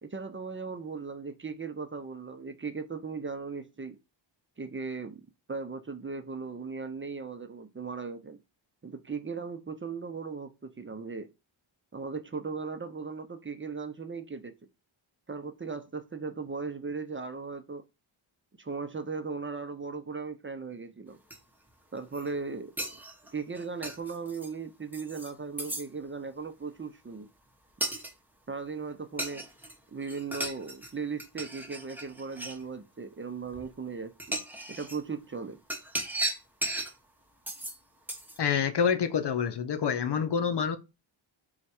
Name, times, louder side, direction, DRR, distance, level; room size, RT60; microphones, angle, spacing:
voice 1, 0.0-4.0 4.6-8.4 8.8-11.3 11.9-14.5 15.3-17.8 18.6-21.2 21.9-22.7 23.3-27.3 28.5-29.5 29.9-34.4 34.7-35.6, right 4 dB, 25° right, 0.7 m, -37 dB
sound 1, 21.3-21.4 22.0-22.3 22.8-24.5 24.9-25.3 25.6-25.9 27.8-28.1 29.2-29.7 30.0-30.9 31.2-32.6 33.5-33.6 34.2-35.0 35.7-36.9 37.5-37.8 38.1-38.4, right 2 dB, 5° right, 1.0 m, -36 dB
voice 2, 38.4-40.8, left 7 dB, 60° left, 0.7 m, -27 dB
4.4 x 2.4 x 4.3 m
cardioid pair, 65°, 47 cm